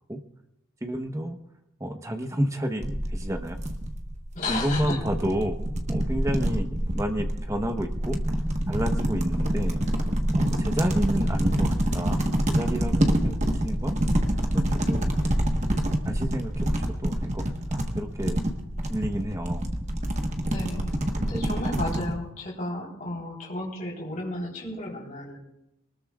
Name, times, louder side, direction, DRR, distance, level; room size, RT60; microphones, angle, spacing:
voice 1, 0.8-1.4 1.8-3.6 4.5-8.2 8.7-9.8 10.3-14.0 14.5-15.1 16.0-18.4 18.9-19.7, equal, 15° right, 5 dB, 1.0 m, -30 dB
sound 1, 2.8-22.1, right 1 dB, 35° right, 1.3 m, -26 dB
voice 2, 4.3-5.0 20.5-25.4, left 1 dB, 40° left, -2 dB, 3.8 m, -33 dB
23.0 x 20.0 x 2.4 m, 0.83 s
head